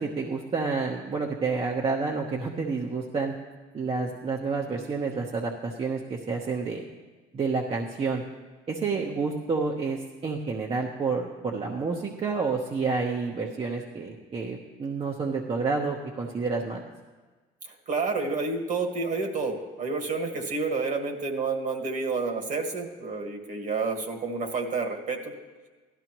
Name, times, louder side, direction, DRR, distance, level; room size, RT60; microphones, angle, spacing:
voice 1, 0.0-3.3 3.7-6.8 7.3-8.2 8.7-16.9, right 4 dB, 35° right, -1 dB, 1.0 m, -29 dB
voice 2, 17.6-25.3, right 4 dB, 50° right, 3 dB, 1.7 m, -29 dB
16.0 x 12.5 x 3.0 m, 1.3 s
cardioid pair, 110°, 17 cm